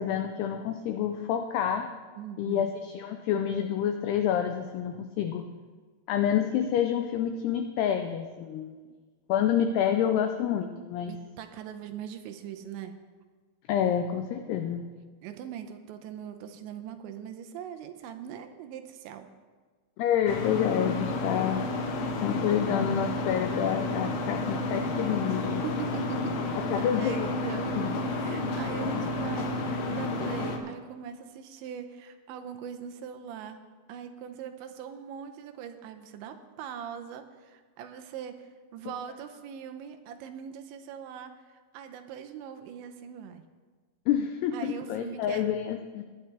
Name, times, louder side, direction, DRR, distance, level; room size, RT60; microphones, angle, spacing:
voice 1, 0.0-1.9 2.4-5.5 6.1-8.7 9.3-11.1 13.7-14.9 20.0-21.7 22.2-25.6 26.7-27.3 27.8-27.9 28.8-29.1 44.1-46.0, left 9 dB, 85° left, 6 dB, 2.3 m, -28 dB
voice 2, 2.2-2.7 11.1-12.9 15.2-19.3 25.6-33.6 33.9-41.3 41.7-43.4 44.5-45.4, right 8 dB, 80° right, 7 dB, 2.9 m, -41 dB
sound 1, 20.3-30.6, left 2 dB, 70° left, 2.4 m, -31 dB
20.0 x 9.7 x 3.4 m, 1.4 s
omnidirectional pair, 5.3 m